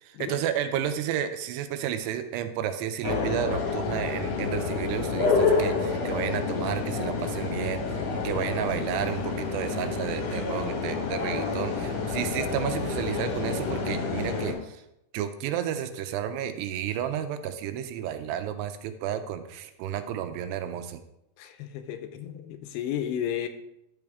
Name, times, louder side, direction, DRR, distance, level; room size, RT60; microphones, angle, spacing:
voice 1, 0.0-14.8 15.1-21.0, right 10 dB, 80° right, 9 dB, 2.6 m, -32 dB
sound 1, 3.0-14.5, left 4 dB, 55° left, 2.0 m, -28 dB
voice 2, 21.4-23.5, left 10 dB, 80° left, 8 dB, 2.7 m, -33 dB
11.0 x 7.0 x 3.5 m, 0.83 s
omnidirectional pair, 4.9 m